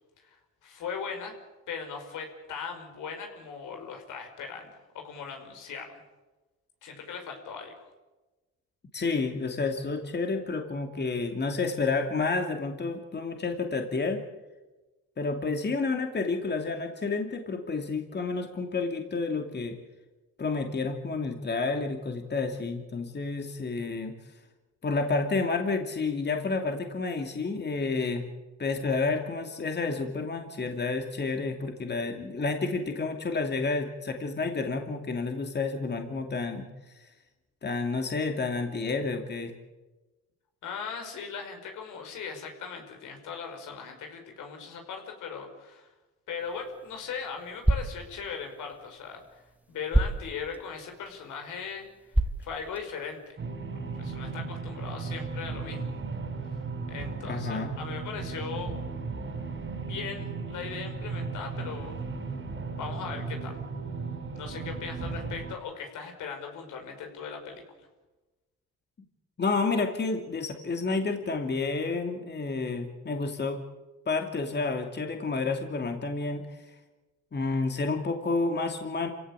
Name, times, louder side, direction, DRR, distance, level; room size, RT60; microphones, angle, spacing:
voice 1, 0.2-1.3 1.7-5.9 6.8-7.7 40.6-45.9 46.3-49.4 49.7-53.4 53.9-55.9 56.9-58.8 59.8-62.0 62.7-63.6 64.3-67.9, left 6 dB, 80° left, 4 dB, 5.3 m, -39 dB
voice 2, 8.9-14.2 15.2-19.8 20.4-24.1 24.8-28.3 28.6-36.7 37.0-37.1 37.6-39.5 57.2-57.7 69.4-73.6 74.1-76.6 77.3-79.1, left 3 dB, 35° left, 4 dB, 2.6 m, -30 dB
sound 1, 46.4-53.3, right 1 dB, 5° right, 1.6 m, -32 dB
sound 2, 53.4-65.5, right 4 dB, 40° right, 4.1 m, -36 dB
27.5 x 17.0 x 8.4 m, 1.2 s
cardioid pair, 90°, 30 cm